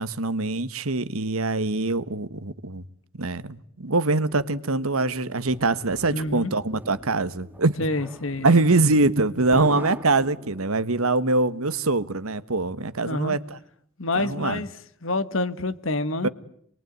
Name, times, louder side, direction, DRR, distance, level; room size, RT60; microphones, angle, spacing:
voice 1, 0.0-2.8 3.2-7.8 8.4-13.6 14.1-14.6 16.2-16.3, right 3 dB, 90° right, 1.4 m, -23 dB
sound 1, 4.1-13.1, equal, 45° right, 4.3 m, -52 dB
sound 2, 5.0-10.9, right 1 dB, 10° right, 1.5 m, -42 dB
voice 2, 6.1-6.5 7.8-8.6 9.5-9.7 13.0-13.4 14.0-14.7 15.0-16.3, left 2 dB, 70° left, 1.8 m, -27 dB
28.5 x 22.0 x 9.5 m
head